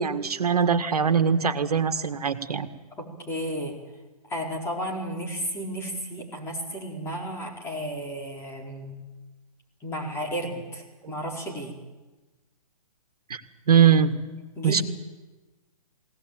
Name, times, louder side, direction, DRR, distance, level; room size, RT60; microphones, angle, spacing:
voice 1, 0.0-2.7 13.3-13.4 13.7-14.2 14.6-14.8, right 7 dB, 75° right, 9 dB, 1.9 m, -21 dB
voice 2, 3.0-3.8 4.3-9.0 9.8-11.8 14.5-14.8, equal, 15° left, -1 dB, 4.7 m, -33 dB
20.5 x 18.0 x 9.2 m, 1.2 s
hypercardioid pair, 135°, 20 cm